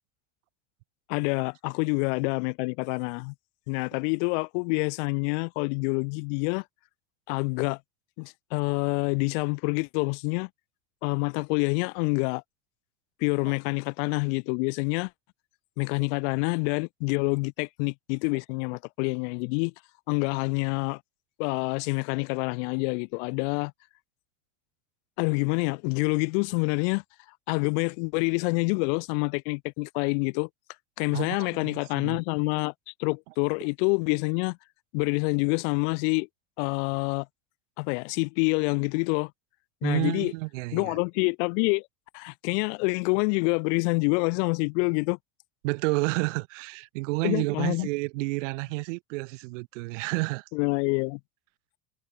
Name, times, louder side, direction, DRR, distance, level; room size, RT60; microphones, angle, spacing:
voice 1, 1.1-3.3 3.7-6.6 7.3-7.8 8.2-10.5 11.0-12.4 13.2-15.1 15.8-19.7 20.1-21.0 21.4-23.7 25.2-27.0 27.5-30.5 31.0-34.6 34.9-36.3 36.6-37.3 37.8-39.3 39.8-40.3 40.7-41.9 42.1-45.2 47.2-47.9 50.5-51.2, left 37 dB, 70° left, 0.9 m, -27 dB
voice 2, 31.6-32.2 39.8-40.9 45.6-50.4, right 24 dB, 80° right, 1.3 m, -30 dB
supercardioid pair, 120°, 36 cm